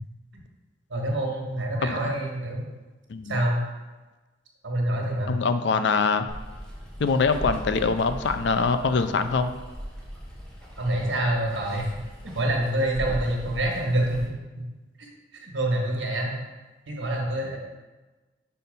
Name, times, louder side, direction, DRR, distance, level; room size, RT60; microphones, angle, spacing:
voice 1, 0.9-2.7 3.2-3.6 4.6-5.4 10.8-11.9 12.2-14.4 15.0-16.4 16.9-17.6, right 1 dB, 85° right, 0 dB, 1.4 m, -26 dB
voice 2, 3.1-3.4 5.3-6.3 7.0-9.5, left 4 dB, 65° left, 10 dB, 0.4 m, -23 dB
Water, 6.3-14.2, equal, 5° left, 0.9 m, -39 dB
5.2 x 4.3 x 5.3 m, 1.2 s
head